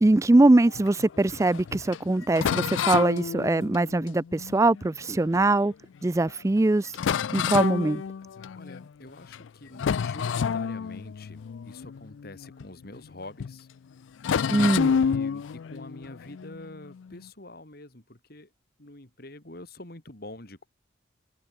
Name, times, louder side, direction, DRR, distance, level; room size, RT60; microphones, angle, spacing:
voice 1, 0.0-5.7 6.0-6.9 7.3-8.0 14.5-14.9, right 2 dB, 15° right, 0.3 m, -22 dB
sound 1, 0.6-5.6 6.2-6.3 6.6-6.7 6.9-8.9 9.2-9.5 9.7-13.1 13.4-13.6 14.2-17.2, left 7 dB, 80° left, 0.4 m, -30 dB
voice 2, 8.6-13.7 14.6-18.5 18.8-20.7, left 2 dB, 55° left, 3.0 m, -45 dB
head